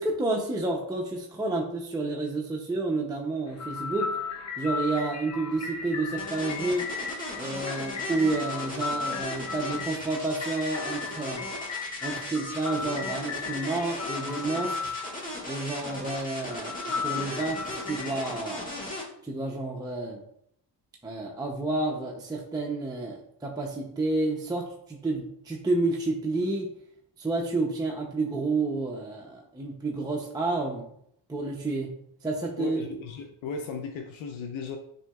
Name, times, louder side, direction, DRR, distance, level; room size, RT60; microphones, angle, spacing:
voice 1, 0.0-4.2 4.6-6.9 7.4-11.5 12.0-14.9 15.5-18.7 19.2-20.2 21.0-26.7 27.2-30.9 31.3-31.9 32.2-32.8, right 2 dB, 10° right, -1 dB, 0.5 m, -30 dB
sound 1, 3.5-18.4, left 5 dB, 35° left, 0.6 m, -36 dB
sound 2, 6.2-19.0, left 1 dB, 15° left, 1.5 m, -37 dB
voice 2, 32.6-34.8, left 4 dB, 75° left, 4 dB, 0.6 m, -36 dB
7.4 x 2.8 x 2.3 m, 0.71 s
cardioid pair, 95°, 48 cm